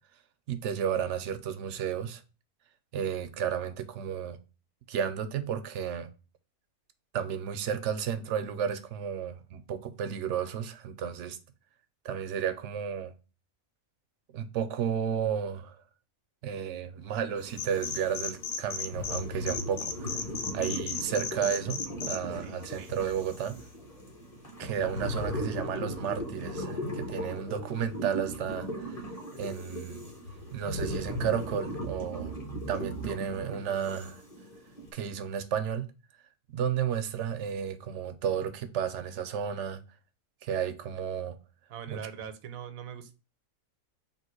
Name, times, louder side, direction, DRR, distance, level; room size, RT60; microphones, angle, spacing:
voice 1, 0.5-2.2 2.9-4.4 4.9-6.1 7.1-11.4 12.0-13.1 14.3-15.8 16.4-20.1 20.5-23.6 24.6-29.0 29.4-30.1 30.5-32.3 32.7-34.2 34.9-35.9 36.5-39.8 40.4-41.4 41.9-42.0, right 8 dB, 65° right, 0.8 m, -32 dB
sound 1, 17.4-34.9, equal, 30° left, 1.1 m, -38 dB
sound 2, 17.5-19.2 19.5-22.2, left 6 dB, 80° left, 1.1 m, -34 dB
voice 2, 41.7-43.1, right 7 dB, 85° right, 1.1 m, -41 dB
3.6 x 2.8 x 4.3 m
omnidirectional pair, 1.4 m